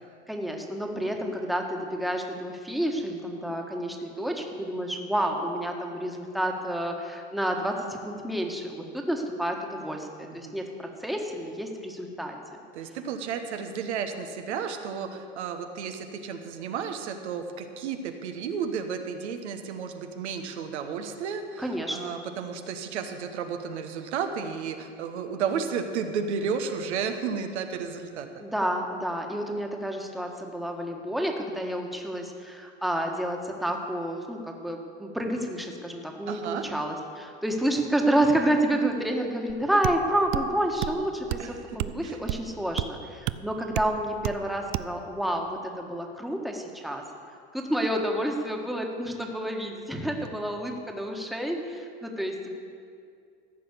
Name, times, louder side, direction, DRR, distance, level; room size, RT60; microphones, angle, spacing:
voice 1, 0.3-10.1 10.3-12.4 21.6-22.2 28.4-47.0 47.5-52.5, right 1 dB, ahead, 2 dB, 1.4 m, -29 dB
voice 2, 12.7-28.4 36.3-36.7 41.4-41.8 42.0-42.2, right 6 dB, 85° right, 6 dB, 1.2 m, -33 dB
sound 1, 39.5-39.6 39.8-40.0 40.3-40.5 40.8-41.0 41.3-41.5 41.8-42.0 42.3-42.5 42.8-42.9 43.3-43.4 43.8-43.9 44.2-44.4 44.7-44.9, right 17 dB, 50° right, 0.5 m, -30 dB
14.5 x 6.0 x 8.3 m, 2.3 s
hypercardioid pair, 105°, 33 cm